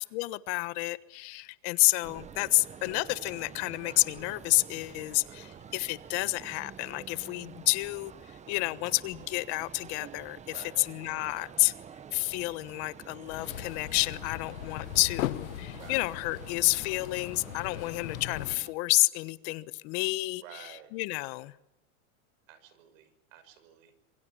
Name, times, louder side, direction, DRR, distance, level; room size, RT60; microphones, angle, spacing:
voice 1, 0.0-11.7 12.1-21.5, left 23 dB, 50° left, 15 dB, 1.2 m, -30 dB
sound 1, 1.8-10.8 11.2-11.6 12.2-12.4 12.7-14.4, left 3 dB, 10° left, 5.7 m, -64 dB
sound 2, 2.0-18.7, right 7 dB, 15° right, 1.0 m, -48 dB
voice 2, 5.2-5.6 10.5-10.8 15.8-16.0 20.4-20.9 22.5-23.9, right 9 dB, 70° right, 12 dB, 6.2 m, -51 dB
sound 3, 13.3-18.6, left 14 dB, 85° left, 1.4 m, -39 dB
27.0 x 23.0 x 7.2 m, 0.89 s
supercardioid pair, 140°, 40 cm